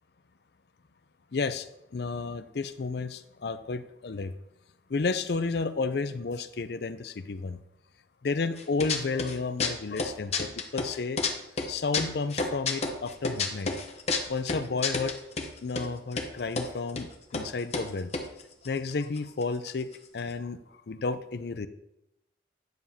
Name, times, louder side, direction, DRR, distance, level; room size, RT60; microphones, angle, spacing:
voice 1, 1.3-1.7 1.9-4.3 4.9-7.6 8.2-11.2 11.7-13.7 14.3-15.2 15.6-18.1 18.6-19.9 20.1-20.6 20.9-21.7, left 4 dB, 60° left, 12 dB, 0.5 m, -31 dB
sound 1, 8.6-9.3 9.6-11.3 11.6-15.5 15.8-15.9 16.1-16.7 17.0-17.1 17.3-17.5 17.7-19.4 19.7-19.8 19.9-20.3, left 4 dB, 35° left, 0.8 m, -30 dB
9.3 x 7.1 x 2.8 m, 0.85 s
head